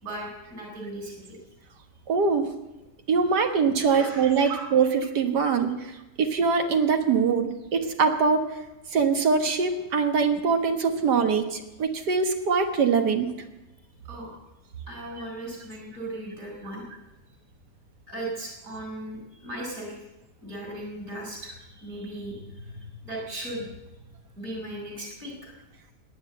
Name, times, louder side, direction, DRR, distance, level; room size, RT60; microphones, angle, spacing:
voice 1, 0.0-1.4 3.9-4.6 14.1-14.3 14.9-16.8 18.1-19.9 20.4-23.7 24.4-25.5, right 1 dB, 60° right, -1 dB, 4.8 m, -37 dB
voice 2, 2.1-2.5 3.1-4.9 5.2-8.4 8.9-13.3 15.2-15.3, right 5 dB, 85° right, 5 dB, 2.0 m, -23 dB
18.0 x 9.8 x 7.8 m, 0.99 s
omnidirectional pair, 1.7 m